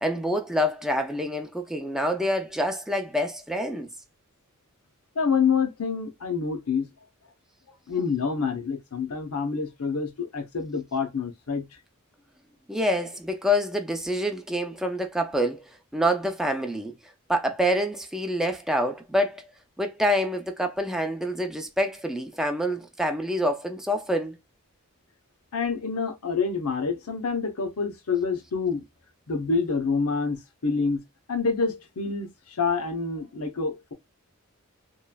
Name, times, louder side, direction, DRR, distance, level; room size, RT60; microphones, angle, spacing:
voice 1, 0.0-3.9 12.7-17.0 17.3-19.5 19.8-24.4, equal, ahead, 0.4 m, -26 dB
voice 2, 5.2-6.9 7.9-11.7 25.5-28.8 29.3-31.0 31.3-33.9, left 5 dB, 90° left, 0.8 m, -27 dB
3.0 x 2.4 x 2.2 m
head